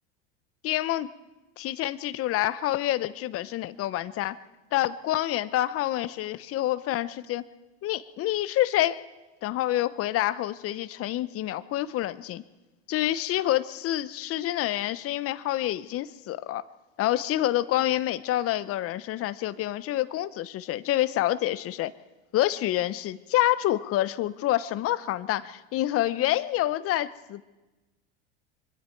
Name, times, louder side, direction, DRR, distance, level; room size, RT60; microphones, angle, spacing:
voice 1, 0.6-1.1 1.6-4.4 4.7-7.4 7.8-9.0 9.4-12.4 12.9-16.6 17.0-21.9 22.3-27.4, left 14 dB, 50° left, 15 dB, 1.0 m, -27 dB
26.0 x 23.5 x 4.6 m, 1.1 s
supercardioid pair, 95°, 30 cm